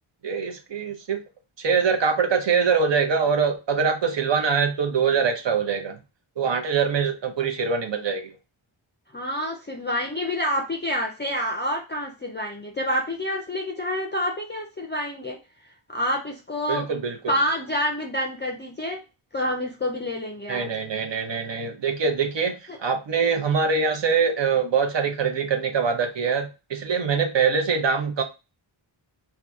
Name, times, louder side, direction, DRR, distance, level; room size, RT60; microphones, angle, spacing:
voice 1, 0.2-1.2 1.6-6.0 6.4-8.3 16.7-17.2 20.5-28.2, right 5 dB, 60° right, 5 dB, 0.7 m, -23 dB
voice 2, 9.1-15.4 15.9-16.9 17.3-19.0 19.3-20.7 22.7-22.8, left 1 dB, 25° left, 2 dB, 0.4 m, -28 dB
2.7 x 2.3 x 3.5 m, 0.28 s
wide cardioid pair, 115°, 49 cm